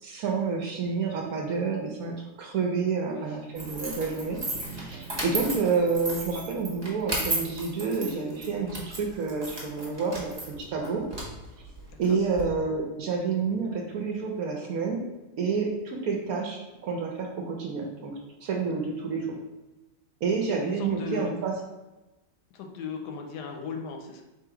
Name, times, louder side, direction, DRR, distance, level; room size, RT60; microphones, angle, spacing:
voice 1, 0.0-4.4 4.7-10.3 10.6-11.0 12.0-15.0 15.4-18.1 18.4-19.3 20.2-21.5, right 5 dB, 65° right, 1 dB, 1.0 m, -29 dB
voice 2, 3.1-3.4 5.2-5.6 11.9-12.2 20.6-21.3 22.5-24.2, left 5 dB, 75° left, 3 dB, 1.1 m, -38 dB
sound 1, 3.5-12.4, right 1 dB, 20° right, 0.7 m, -35 dB
sound 2, 4.4-9.2, right 2 dB, 30° left, 0.9 m, -49 dB
3.7 x 2.9 x 4.7 m, 1.1 s
omnidirectional pair, 1.9 m